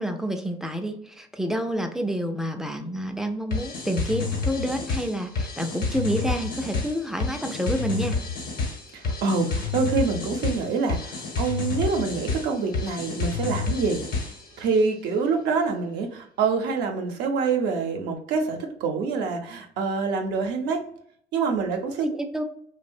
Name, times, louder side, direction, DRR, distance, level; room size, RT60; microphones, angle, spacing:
voice 1, 0.0-8.2 22.0-22.4, equal, 5° right, 5 dB, 0.3 m, -28 dB
sound 1, 3.5-14.6, left 4 dB, 60° left, 0.9 m, -29 dB
voice 2, 8.9-20.8 21.3-22.1, right 4 dB, 80° right, 3 dB, 0.5 m, -26 dB
2.9 x 2.0 x 2.5 m, 0.65 s
cardioid pair, 110°, 17 cm